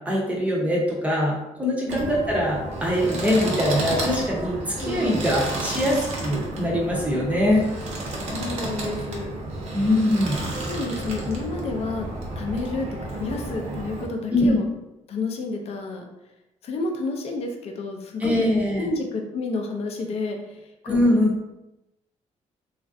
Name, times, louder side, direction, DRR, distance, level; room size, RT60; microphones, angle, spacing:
voice 1, 0.1-7.7 9.7-10.4 14.3-14.6 18.2-18.9 20.9-21.3, left 1 dB, 10° right, -4 dB, 0.6 m, -22 dB
sound 1, 1.9-14.1, right 2 dB, 65° right, 0.8 m, -31 dB
voice 2, 4.8-5.1 8.2-9.3 9.9-10.0 10.7-12.1 12.4-14.7 15.1-16.0 16.6-18.5 18.8-21.0, left 3 dB, 55° left, 3 dB, 0.5 m, -30 dB
3.1 x 2.4 x 2.6 m, 0.92 s
cardioid pair, 125°, 12 cm